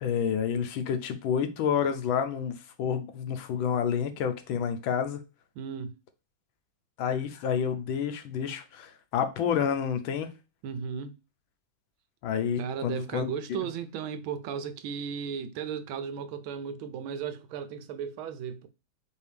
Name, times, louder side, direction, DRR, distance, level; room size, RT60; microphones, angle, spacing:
voice 1, 0.0-5.2 7.0-10.3 12.2-13.3, left 7 dB, 85° left, 1.5 m, -29 dB
voice 2, 5.6-5.9 10.6-11.1 12.6-18.7, right 7 dB, 85° right, 1.4 m, -35 dB
4.7 x 2.7 x 3.3 m
omnidirectional pair, 2.2 m